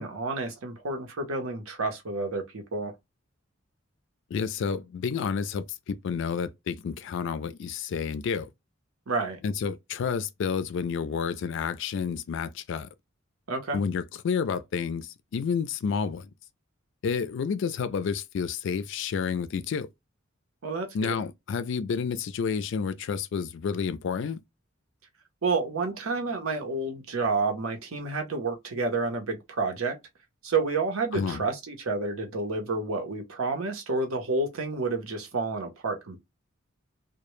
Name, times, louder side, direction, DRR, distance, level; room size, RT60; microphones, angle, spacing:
voice 1, 0.0-2.9 9.1-9.4 13.5-13.8 20.6-21.2 25.4-30.0 30.4-36.2, right 3 dB, 85° right, 0.8 m, -30 dB
voice 2, 4.3-8.5 9.4-12.9 13.7-16.3 17.0-19.9 20.9-24.4 31.1-31.4, left 6 dB, 60° left, 0.3 m, -30 dB
2.1 x 2.1 x 3.0 m
head